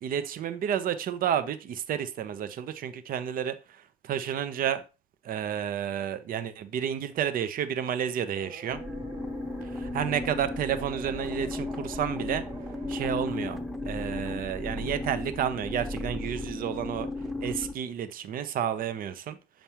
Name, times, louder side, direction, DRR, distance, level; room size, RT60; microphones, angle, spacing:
voice 1, 0.0-3.6 4.0-4.8 5.2-8.8 9.7-12.4 12.9-13.6 13.9-17.1 17.4-19.4, right 9 dB, 65° right, 11 dB, 0.7 m, -31 dB
sound 1, 8.3-15.3, right 4 dB, 35° right, 1.6 m, -48 dB
sound 2, 8.7-17.7, left 2 dB, ahead, 0.8 m, -35 dB
7.2 x 5.3 x 2.9 m, 0.30 s
supercardioid pair, 75°, 16 cm